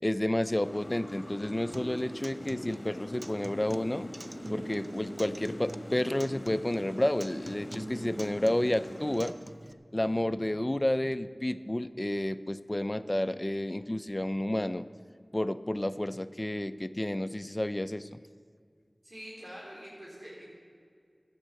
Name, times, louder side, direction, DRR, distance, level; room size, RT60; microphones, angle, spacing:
voice 1, 0.0-4.1 4.5-9.4 9.9-14.9 15.3-18.2, left 1 dB, 25° left, 12 dB, 0.5 m, -30 dB
sound 1, 0.6-9.3, left 1 dB, 50° left, 1.6 m, -43 dB
Acoustic guitar, 1.7-9.7, right 1 dB, 45° right, 0.5 m, -45 dB
voice 2, 19.0-20.5, equal, 70° right, -6 dB, 4.0 m, -45 dB
13.0 x 9.1 x 7.5 m, 2.2 s
wide cardioid pair, 45°, 0 cm